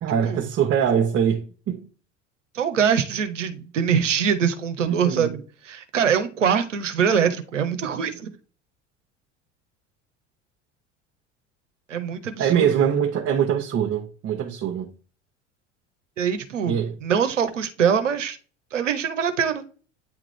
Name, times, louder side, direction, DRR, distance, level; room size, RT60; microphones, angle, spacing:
voice 1, 0.0-1.9 4.8-5.3 12.4-14.9 16.7-17.0, right 8 dB, 40° right, 1.1 m, -23 dB
voice 2, 2.5-8.3 11.9-12.7 16.2-18.4 18.7-19.6, right 7 dB, 80° right, 0.8 m, -23 dB
9.0 x 3.6 x 3.2 m
figure-of-eight pair, 65°, 36 cm